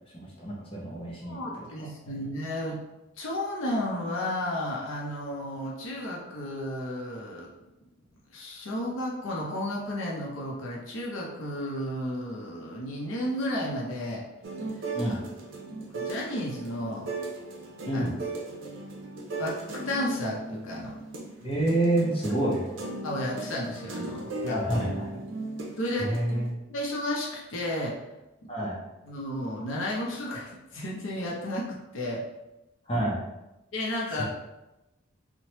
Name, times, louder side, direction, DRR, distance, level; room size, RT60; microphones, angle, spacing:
voice 1, 0.1-1.6 2.1-2.3 14.9-15.2 17.9-18.1 21.4-22.6 24.5-25.1 26.0-26.6 28.5-28.8 32.9-33.2 34.2-34.3, right 1 dB, 25° left, -6 dB, 0.7 m, -28 dB
voice 2, 1.3-2.8 3.2-7.5 8.3-14.2 15.0-15.2 15.9-17.1 17.9-18.0 19.4-21.0 23.0-24.6 25.8-26.2 26.7-28.0 28.4-28.5 29.0-32.2 33.7-34.2, left 1 dB, 75° left, -3 dB, 0.6 m, -33 dB
sound 1, 14.4-26.5, right 2 dB, 65° right, 0.5 m, -37 dB
3.1 x 2.0 x 2.9 m, 0.97 s
head